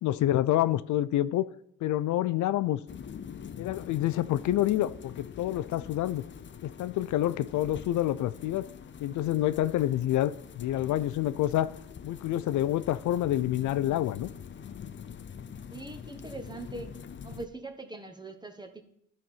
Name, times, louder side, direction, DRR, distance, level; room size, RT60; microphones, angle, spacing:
voice 1, 0.0-1.5 1.8-2.8 3.6-6.2 6.6-8.7 9.0-11.7 12.0-14.3, left 13 dB, 75° left, 0.5 m, -27 dB
sound 1, 2.9-17.5, left 7 dB, 40° left, 0.7 m, -44 dB
voice 2, 15.7-17.0 17.2-18.8, right 2 dB, 15° right, 1.2 m, -42 dB
12.5 x 4.5 x 5.5 m
cardioid pair, 90°, 30 cm